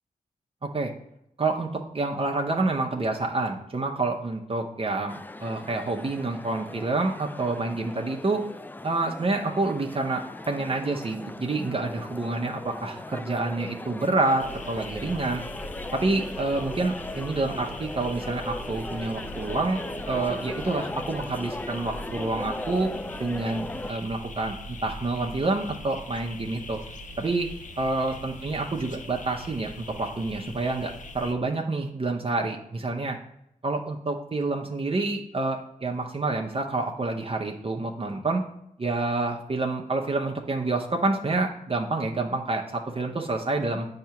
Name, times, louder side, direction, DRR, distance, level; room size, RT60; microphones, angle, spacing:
voice 1, 0.6-0.9 1.4-8.5 8.8-15.4 15.9-19.8 20.1-22.9 23.2-26.8 27.2-27.5 27.8-33.2 33.6-38.4 38.8-43.9, right 2 dB, 40° right, 1 dB, 0.8 m, -28 dB
sound 1, 5.1-23.9, left 2 dB, 10° left, 0.3 m, -38 dB
sound 2, 14.4-31.3, left 1 dB, 55° left, 0.8 m, -41 dB
7.8 x 2.9 x 5.8 m, 0.79 s
cardioid pair, 50°, 15 cm